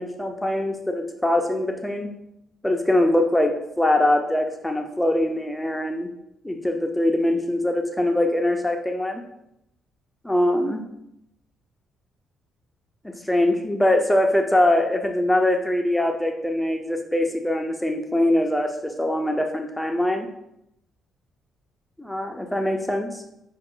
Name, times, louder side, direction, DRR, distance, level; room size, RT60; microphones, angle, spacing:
voice 1, 0.0-2.1 2.6-6.1 6.4-9.2 10.2-10.8 13.0-20.3 22.0-23.2, left 1 dB, 5° left, 4 dB, 0.5 m, -22 dB
5.7 x 2.4 x 3.7 m, 0.81 s
cardioid pair, 90°, 0 cm